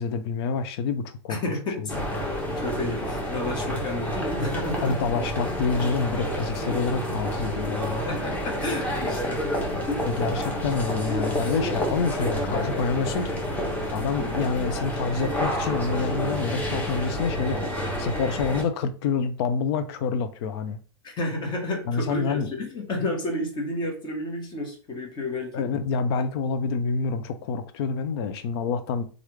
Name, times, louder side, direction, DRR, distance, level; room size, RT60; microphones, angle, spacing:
voice 1, 0.0-1.4 3.6-3.8 4.8-8.0 9.0-9.2 10.1-13.4 13.9-20.8 21.9-22.5 25.5-29.0, left 5 dB, 60° left, 0.5 m, -27 dB
voice 2, 1.3-1.9 2.2-5.0 8.0-9.4 9.9-10.0 14.2-14.5 21.0-25.6, left 1 dB, 30° left, 1.2 m, -31 dB
sound 1, 1.9-18.6, equal, 10° left, 1.0 m, -29 dB
3.2 x 2.5 x 3.1 m
hypercardioid pair, 120°, 15 cm